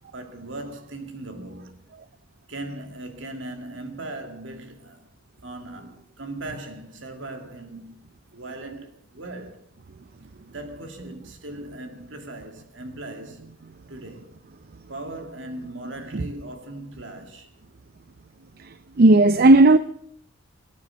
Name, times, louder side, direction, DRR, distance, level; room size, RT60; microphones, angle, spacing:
voice 1, 0.1-1.8 2.5-5.1 5.4-8.0 8.3-9.6 10.5-13.5 13.9-14.3 14.9-17.5, right 2 dB, 65° right, 2.3 m, -38 dB
voice 2, 19.0-19.8, right 2 dB, 50° right, 0.5 m, -13 dB
18.5 x 9.5 x 6.4 m
head